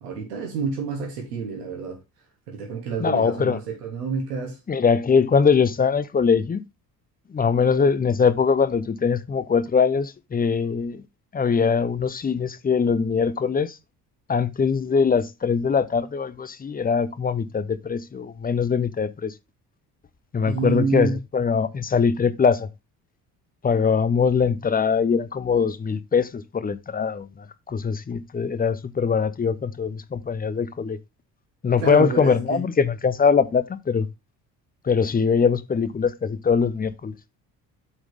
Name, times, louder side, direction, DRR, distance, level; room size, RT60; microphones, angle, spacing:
voice 1, 0.0-2.0 2.5-4.6 20.5-21.2 31.8-32.6, right 5 dB, 70° right, 3.2 m, -28 dB
voice 2, 3.0-3.6 4.7-6.6 7.3-11.0 11.3-13.8 14.3-19.3 20.3-22.7 23.6-31.0 31.6-34.1 34.8-37.1, left 6 dB, 20° left, 0.8 m, -22 dB
7.8 x 6.0 x 3.7 m
figure-of-eight pair, 50°, 49 cm